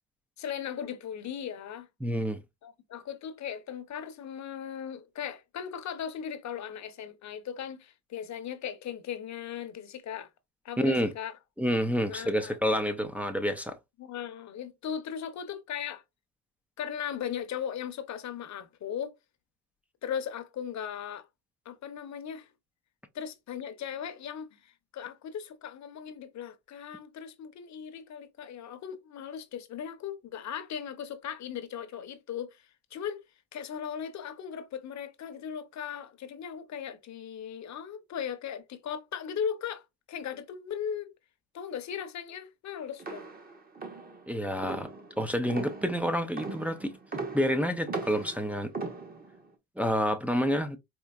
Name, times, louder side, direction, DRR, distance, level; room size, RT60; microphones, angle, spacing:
voice 1, 0.4-1.9 2.6-10.3 10.6-11.3 12.1-12.6 14.0-16.0 16.8-19.1 20.0-21.3 21.6-22.5 23.1-33.2 33.5-39.8 40.1-41.1 41.5-43.3, left 8 dB, 45° left, 0.8 m, -38 dB
voice 2, 2.0-2.4 10.8-11.1 11.6-13.8 44.3-44.9 45.2-46.9 47.3-48.7 49.8-50.8, equal, 5° right, 0.4 m, -28 dB
sound 1, 43.0-49.5, right 4 dB, 25° right, 0.8 m, -39 dB
4.6 x 2.7 x 2.4 m
cardioid pair, 115°, 40 cm